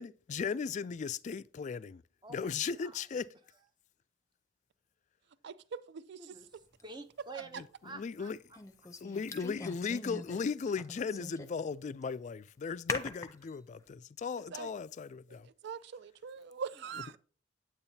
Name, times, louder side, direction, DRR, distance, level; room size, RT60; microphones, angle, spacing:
voice 1, 0.0-2.0 2.3-3.2 7.6-8.4 9.0-15.5, left 5 dB, 40° left, 0.3 m, -37 dB
voice 2, 2.2-3.0 6.2-8.3, right 3 dB, 25° right, 0.6 m, -49 dB
voice 3, 5.4-6.2 14.5-14.7 15.6-17.2, right 6 dB, 60° right, 0.4 m, -42 dB
sound 1, 6.8-6.9 8.5-10.4 10.7-11.6 12.0-12.1 12.9-13.5, left 3 dB, 15° left, 0.7 m, -41 dB
8.8 x 8.7 x 2.8 m
head